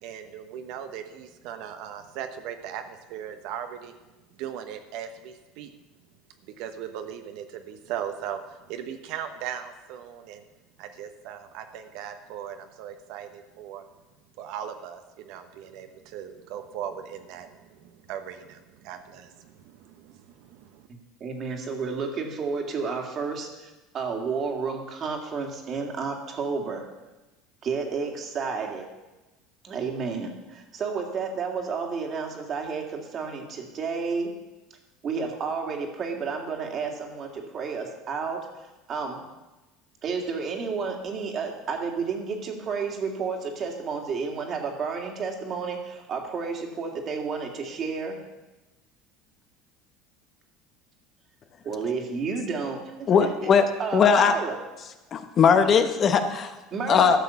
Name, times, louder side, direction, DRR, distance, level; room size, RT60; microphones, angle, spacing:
voice 1, 0.0-3.9 4.4-5.7 6.6-10.4 10.8-13.8 14.4-20.9, right 9 dB, 65° right, 7 dB, 1.0 m, -38 dB
voice 2, 21.2-26.8 27.6-28.9 29.6-34.3 35.0-38.5 38.9-39.2 40.0-48.2 51.6-53.5 53.8-54.6 56.7-57.2, right 5 dB, 35° right, 3 dB, 2.1 m, -31 dB
voice 3, 53.1-53.7 53.9-54.4 55.1-56.6 56.9-57.2, left 6 dB, 35° left, 8 dB, 0.9 m, -19 dB
12.5 x 6.5 x 7.0 m, 1.1 s
supercardioid pair, 130°, 0 cm